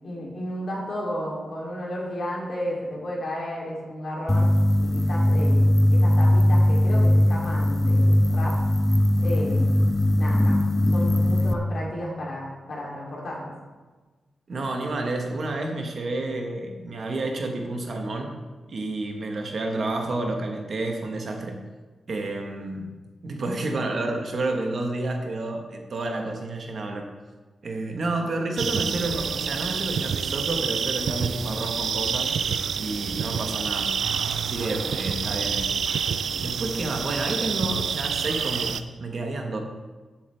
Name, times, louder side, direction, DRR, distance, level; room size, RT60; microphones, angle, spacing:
voice 1, 0.0-4.5 4.8-8.6 9.2-9.8 10.2-13.5, equal, 50° left, -3 dB, 2.9 m, -33 dB
sound 1, 4.3-11.5, left 1 dB, 10° left, 0.5 m, -20 dB
voice 2, 14.5-18.3 18.7-21.6 22.1-22.9 23.2-27.1 27.6-32.3 32.8-33.9 34.5-35.8 36.4-39.6, right 2 dB, 45° right, 2 dB, 1.2 m, -30 dB
sound 2, 28.6-38.8, right 7 dB, 70° right, 0.5 m, -28 dB
14.0 x 7.4 x 3.4 m, 1.3 s
wide cardioid pair, 160°, 0 cm